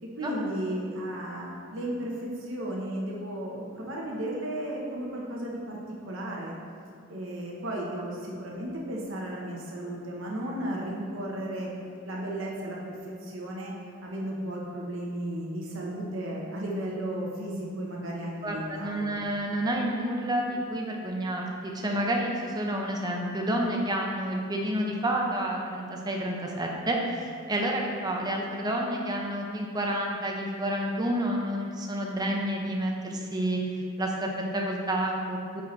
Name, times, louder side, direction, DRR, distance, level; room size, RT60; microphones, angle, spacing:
voice 1, 0.0-5.8 6.0-6.6 7.1-11.7 12.0-13.7 14.0-19.1, right 1 dB, 65° right, -3 dB, 1.0 m, -34 dB
voice 2, 18.4-35.6, right 1 dB, 20° right, 0 dB, 0.7 m, -29 dB
9.1 x 4.4 x 3.2 m, 2.4 s
head